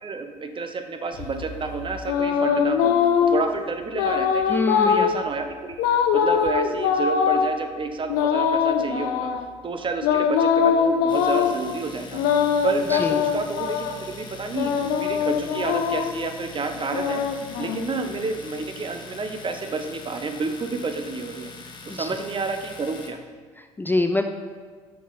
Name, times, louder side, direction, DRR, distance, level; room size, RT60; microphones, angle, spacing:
voice 1, 0.0-2.9 3.3-5.8 6.1-9.3 9.6-13.9 14.2-17.2 17.6-21.5 21.9-23.2, right 4 dB, 35° right, 7 dB, 0.8 m, -30 dB
sound 1, 1.2-3.5 3.9-5.2 5.8-7.5 8.1-9.5 10.0-11.6 12.1-14.0 14.5-16.2 16.8-18.2, left 7 dB, 70° left, 0.5 m, -22 dB
voice 2, 4.5-5.1 12.9-13.2 21.9-22.1 23.6-24.3, left 2 dB, 10° left, 6 dB, 0.4 m, -25 dB
Domestic sounds home sounds, 11.1-23.1, left 4 dB, 30° left, 1.0 m, -42 dB
6.1 x 6.0 x 4.0 m, 1.5 s
hypercardioid pair, 60°, 16 cm